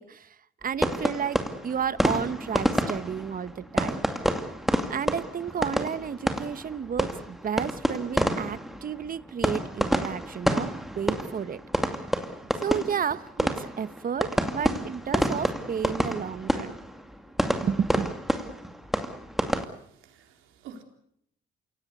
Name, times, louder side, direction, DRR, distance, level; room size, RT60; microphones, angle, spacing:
voice 1, 0.0-4.0 4.9-11.6 12.6-16.7 17.6-18.1, right 7 dB, 45° right, 15 dB, 1.1 m, -32 dB
sound 1, 0.8-19.6, equal, ahead, 2.4 m, -29 dB
voice 2, 19.6-20.8, right 6 dB, 90° right, 5 dB, 4.0 m, -49 dB
28.0 x 17.0 x 8.3 m, 0.71 s
cardioid pair, 90°, 20 cm